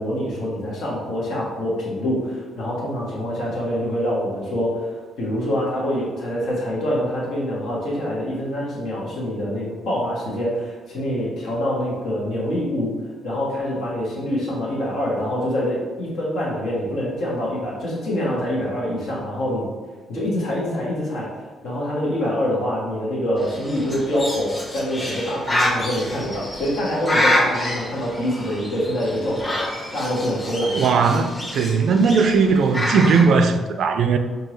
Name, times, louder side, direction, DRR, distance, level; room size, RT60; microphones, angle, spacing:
voice 1, 0.0-12.9 13.2-19.7 20.1-21.3 21.6-29.6 29.9-30.7, equal, 75° left, 1.4 m, -25 dB
Bird, 23.4-33.3, left 1 dB, 30° left, 1.2 m, -27 dB
voice 2, 30.7-34.2, right 5 dB, 65° right, 0.3 m, -18 dB
4.6 x 2.7 x 3.0 m
cardioid pair, 90°, 0 cm